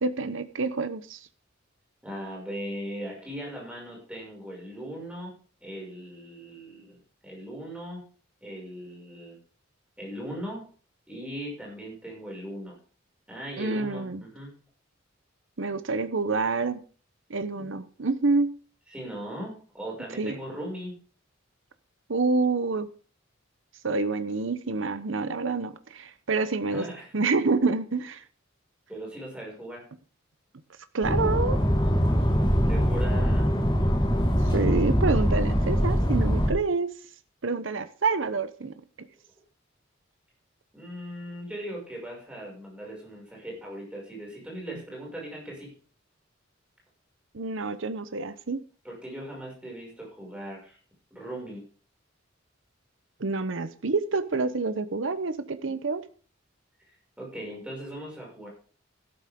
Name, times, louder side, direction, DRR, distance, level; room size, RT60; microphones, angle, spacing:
voice 1, 0.0-1.2 13.6-14.2 15.6-16.8 17.3-18.5 20.2-20.4 22.1-22.9 23.8-26.8 27.1-28.2 30.9-31.6 34.5-36.9 37.4-39.1 47.3-48.6 53.2-56.0, right 3 dB, 70° right, 12 dB, 0.8 m, -27 dB
voice 2, 2.0-5.3 5.6-7.0 7.2-8.0 8.4-9.4 10.0-10.6 11.1-12.8 13.3-14.5 18.9-21.0 26.7-27.1 28.9-29.8 32.7-33.5 40.7-45.7 48.8-50.8 51.1-51.6 57.2-58.5, right 1 dB, 5° right, -2 dB, 6.1 m, -38 dB
sound 1, 31.0-36.5, equal, 20° left, 4.2 m, -23 dB
13.0 x 12.0 x 3.7 m, 0.41 s
head